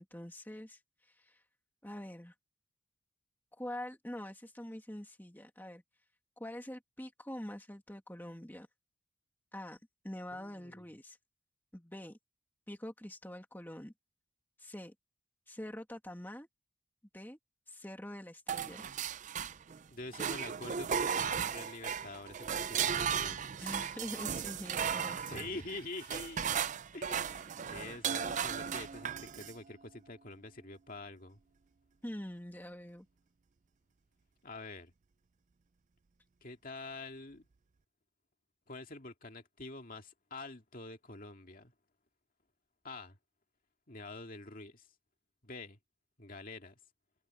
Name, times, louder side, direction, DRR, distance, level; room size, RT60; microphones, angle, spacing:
voice 1, 0.0-1.4 1.8-2.3 3.5-5.8 6.4-8.7 9.5-9.8 10.0-11.2 11.7-12.2 12.7-13.9 14.6-14.9 15.5-16.5 17.1-17.4 17.7-18.8 23.6-25.5 32.0-33.1, left 1 dB, 10° left, 2.1 m, -45 dB
voice 2, 10.3-10.8 19.9-23.4 25.3-26.5 26.9-31.4 34.4-34.9 36.4-37.5 38.7-41.7 42.8-43.2 43.9-44.9 45.4-45.8 46.2-46.8, left 2 dB, 40° left, 2.4 m, -46 dB
sound 1, 18.5-19.8 20.1-29.6, right 7 dB, 35° right, 0.4 m, -36 dB
head